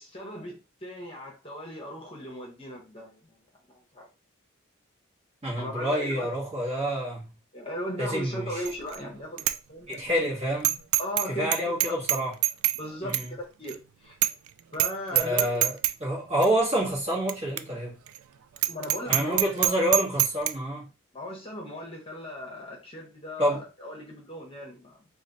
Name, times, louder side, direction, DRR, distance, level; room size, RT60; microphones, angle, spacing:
voice 1, 0.0-4.1 5.5-6.3 7.5-10.0 11.0-11.7 12.7-14.2 14.7-15.6 18.7-19.4 21.1-25.0, equal, 25° left, 1.0 m, -37 dB
voice 2, 5.4-7.2 8.0-8.6 9.9-10.8 11.3-12.3 13.0-13.3 15.1-15.7 16.0-17.9 19.1-20.9 23.4-23.6, right 1 dB, 30° right, 1.5 m, -27 dB
Bicycle bell, 8.7-9.0 9.4-9.6 9.9-10.0 10.6-11.3 11.5-12.8 13.1-13.3 13.7-13.8 14.2-14.5 14.7-14.9 15.2-15.9 16.4-16.5 17.3-17.4 17.6-17.7 18.1-18.2 18.6-20.5, right 14 dB, 85° right, 0.3 m, -24 dB
3.1 x 2.6 x 4.0 m
head